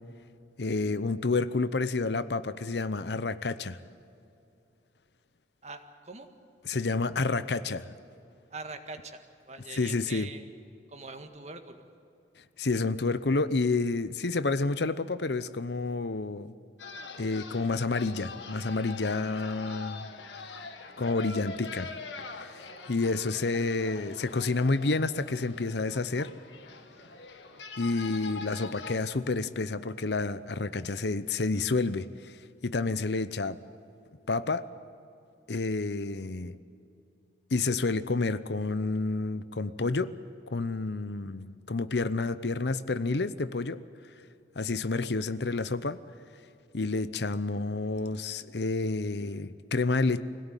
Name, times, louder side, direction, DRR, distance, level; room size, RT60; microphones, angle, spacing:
voice 1, 0.6-3.8 6.6-7.9 9.7-10.3 12.6-16.5 17.2-20.1 21.0-21.9 22.4-26.3 27.8-32.4 32.6-33.6 34.3-34.6 35.5-36.6 37.5-40.1 40.5-43.8 44.6-46.0 46.7-50.2, left 3 dB, 70° left, 14 dB, 0.8 m, -29 dB
voice 2, 5.6-6.3 8.5-10.4 10.9-11.9, right 3 dB, 40° right, 6 dB, 1.7 m, -43 dB
sound 1, 16.8-29.0, left 4 dB, 90° left, 1.9 m, -43 dB
24.5 x 17.0 x 9.2 m, 2.6 s
head